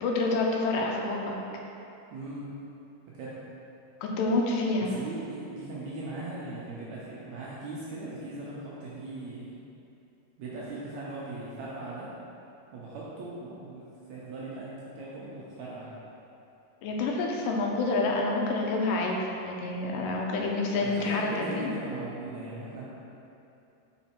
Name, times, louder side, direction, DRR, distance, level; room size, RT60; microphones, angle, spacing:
voice 1, 0.0-1.4 4.0-4.9 16.8-21.7, left 2 dB, 90° left, -1 dB, 2.3 m, -28 dB
voice 2, 2.1-2.5 3.1-3.4 4.8-9.6 10.4-12.1 12.7-15.9 20.8-22.8, right 2 dB, 75° right, -7 dB, 1.7 m, -39 dB
5.5 x 4.2 x 4.3 m, 2.8 s
omnidirectional pair, 3.8 m